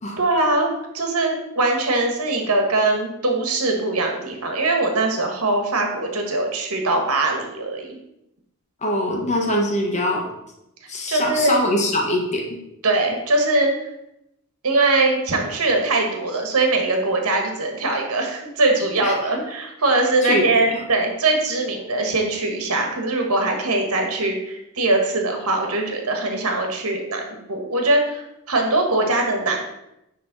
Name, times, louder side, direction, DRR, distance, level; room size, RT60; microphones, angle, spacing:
voice 1, 0.2-8.0 11.1-11.6 12.8-13.7 14.6-29.6, right 2 dB, 85° right, 3 dB, 1.4 m, -21 dB
voice 2, 8.8-10.3 10.9-12.6 19.0-19.1 20.2-20.4, left 1 dB, 30° left, 0 dB, 1.2 m, -23 dB
9.6 x 3.4 x 3.9 m, 0.85 s
head